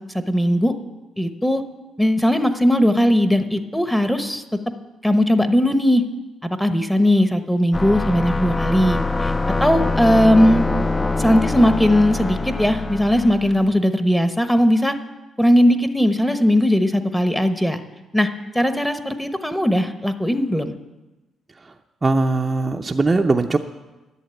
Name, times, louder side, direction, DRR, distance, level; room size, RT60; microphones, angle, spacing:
voice 1, 0.1-0.7 1.2-1.6 2.0-4.4 5.0-6.0 6.4-9.3 9.6-10.7 11.2-15.0 15.4-17.8 18.1-18.3 18.5-20.7, equal, 5° left, 9 dB, 1.0 m, -18 dB
sound 1, 7.7-13.7, left 3 dB, 20° left, 0.6 m, -24 dB
voice 2, 22.0-23.6, right 3 dB, 25° right, 2 dB, 0.7 m, -20 dB
11.0 x 7.8 x 9.1 m, 1.1 s
cardioid pair, 90°, 0 cm